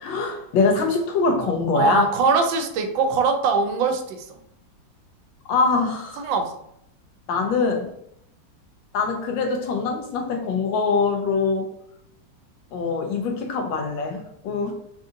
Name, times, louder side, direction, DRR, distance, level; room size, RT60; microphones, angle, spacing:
voice 1, 0.0-2.1 5.5-6.3 7.3-7.9 8.9-11.7 12.7-14.7, left 4 dB, 80° left, 2 dB, 1.4 m, -23 dB
voice 2, 1.7-4.4 6.2-6.5, right 4 dB, 85° right, 5 dB, 1.3 m, -22 dB
3.9 x 2.7 x 2.4 m, 0.73 s
omnidirectional pair, 2.0 m